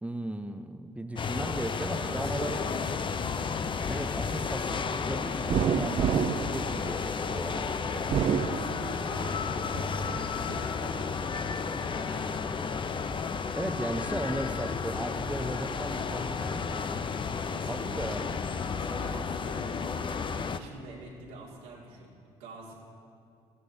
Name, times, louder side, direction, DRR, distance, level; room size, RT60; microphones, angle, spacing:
voice 1, 0.0-2.7 3.9-7.7 13.5-17.1 17.7-18.4, right 1 dB, 10° right, 8 dB, 0.7 m, -36 dB
sound 1, 1.2-20.6, left 5 dB, 35° left, 0.6 m, -32 dB
voice 2, 2.0-3.1 8.4-9.5 9.9-12.7 17.4-18.3 18.6-20.0 20.3-22.1 22.4-22.7, right 2 dB, 80° right, -3 dB, 2.3 m, -46 dB
sound 2, 5.5-7.4 8.0-9.3 9.7-10.6, right 9 dB, 45° right, 0.4 m, -29 dB
17.0 x 14.0 x 2.8 m, 2.4 s
hypercardioid pair, 55°, 14 cm